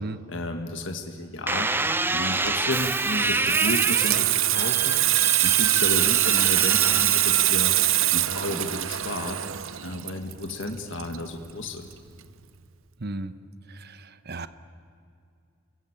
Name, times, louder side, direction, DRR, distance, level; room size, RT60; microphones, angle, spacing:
voice 1, 0.3-1.7 2.1-5.0 5.4-7.7 8.1-9.5 9.8-11.9, left 2 dB, 60° left, 4 dB, 1.8 m, -32 dB
sound 1, 1.5-7.9 8.5-9.0, right 3 dB, 10° right, 0.6 m, -28 dB
Water tap faucet / Sink (filling or washing), 2.3-11.6 11.9-12.2, right 15 dB, 75° right, 0.7 m, -23 dB
voice 2, 13.0-13.3 13.7-14.5, right 2 dB, 50° right, 12 dB, 1.0 m, -35 dB
29.0 x 20.5 x 8.9 m, 2.4 s
head